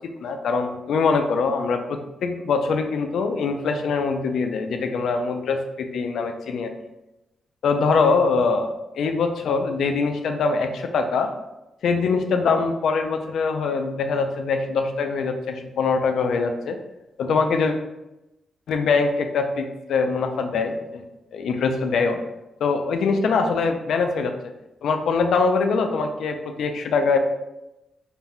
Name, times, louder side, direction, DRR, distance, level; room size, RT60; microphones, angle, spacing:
voice 1, 0.2-6.7 7.6-11.3 11.8-16.8 17.2-17.7 18.7-21.0 21.3-22.2 22.6-24.3 24.8-27.2, left 4 dB, 70° left, 5 dB, 0.3 m, -23 dB
2.4 x 2.1 x 3.5 m, 0.95 s
wide cardioid pair, 155°, 0 cm